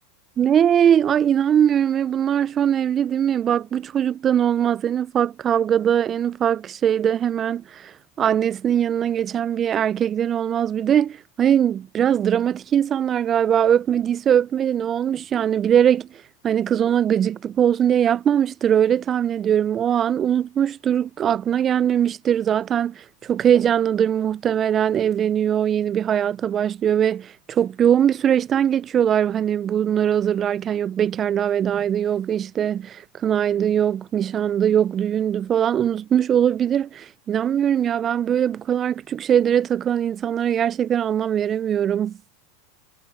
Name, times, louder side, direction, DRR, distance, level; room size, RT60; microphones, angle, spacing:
voice 1, 0.4-42.2, right 9 dB, 30° right, 0.3 m, -21 dB
hypercardioid pair, 115°, 0 cm